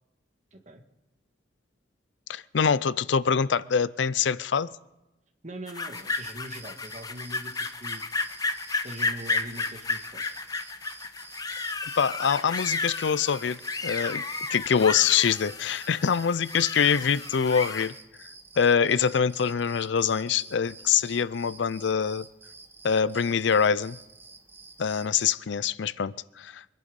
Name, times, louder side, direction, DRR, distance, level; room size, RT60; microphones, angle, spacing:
voice 1, 0.5-0.8 5.4-7.5 7.8-8.0 8.7-10.2, right 1 dB, 40° right, 5 dB, 1.6 m, -42 dB
voice 2, 2.3-4.7 12.0-14.2 14.5-17.9 18.6-22.3 22.8-24.0 24.8-26.7, left 6 dB, 70° left, 19 dB, 0.5 m, -24 dB
sound 1, 5.7-17.9, left 3 dB, 20° left, 0.7 m, -32 dB
sound 2, 5.9-25.3, right 3 dB, 10° right, 1.0 m, -50 dB
24.5 x 10.5 x 5.3 m, 1.0 s
head